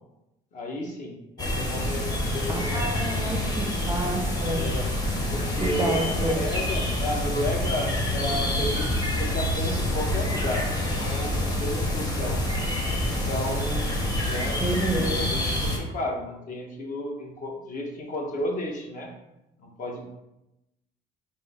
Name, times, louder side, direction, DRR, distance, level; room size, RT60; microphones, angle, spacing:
voice 1, 0.5-2.9 4.5-4.9 5.3-12.4 13.0-13.9 14.2-14.6 14.8-19.1 19.6-20.0, left 1 dB, 50° left, 1 dB, 0.9 m, -33 dB
sound 1, 1.4-15.8, left 1 dB, 25° left, 0.9 m, -27 dB
voice 2, 2.5-4.7 5.6-6.4 14.6-15.3, right 1 dB, 15° right, 2 dB, 0.5 m, -29 dB
3.6 x 2.6 x 4.0 m, 0.92 s
cardioid pair, 110°, 17 cm